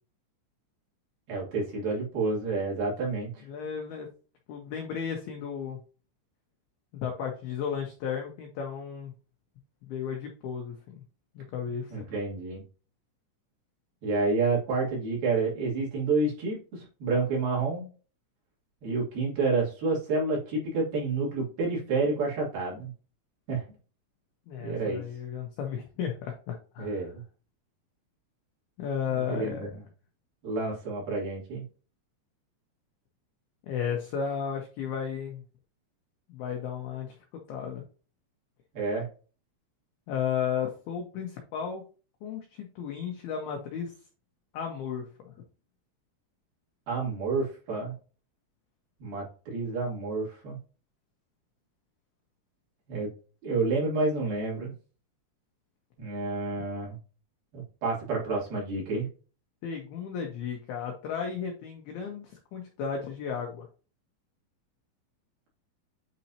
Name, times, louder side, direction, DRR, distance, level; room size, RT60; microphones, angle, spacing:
voice 1, 1.3-3.4 11.9-12.6 14.0-17.9 18.8-22.9 23.5-23.6 24.6-25.0 26.8-27.1 29.1-29.8 30.4-31.6 38.7-39.1 46.9-47.9 49.0-50.6 52.9-53.1 53.4-54.7 56.0-57.0 57.5-59.1, right 3 dB, 50° right, -5 dB, 4.3 m, -29 dB
voice 2, 3.4-4.1 4.5-5.8 6.9-9.1 9.8-11.0 11.4-12.0 24.5-27.1 28.8-29.8 33.7-35.4 36.3-37.8 40.1-41.8 42.2-43.9 44.5-45.3 59.6-63.7, left 7 dB, 80° left, 2 dB, 2.2 m, -34 dB
9.2 x 4.1 x 2.8 m, 0.35 s
omnidirectional pair, 5.9 m